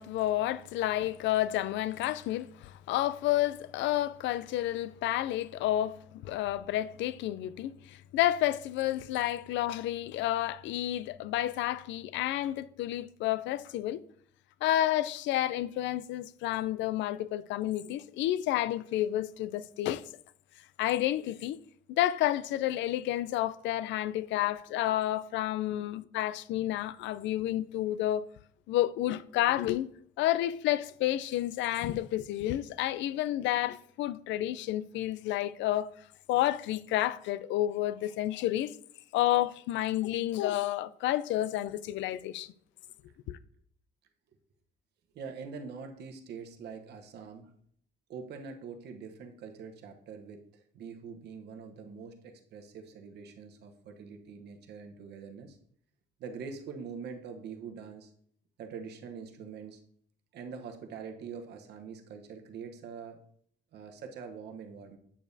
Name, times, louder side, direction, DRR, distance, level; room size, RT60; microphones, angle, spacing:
voice 1, 0.0-14.0 14.6-20.0 20.8-21.6 21.9-28.2 28.7-29.9 30.2-35.9 36.3-38.7 39.1-42.5 43.3-43.4, left 14 dB, 75° left, 0.4 m, -30 dB
voice 2, 45.1-47.5 48.1-55.6 56.2-58.1 58.6-59.8 60.3-63.2 63.7-65.0, right 5 dB, 60° right, 1.0 m, -44 dB
8.4 x 7.0 x 2.7 m
cardioid pair, 165°, 19 cm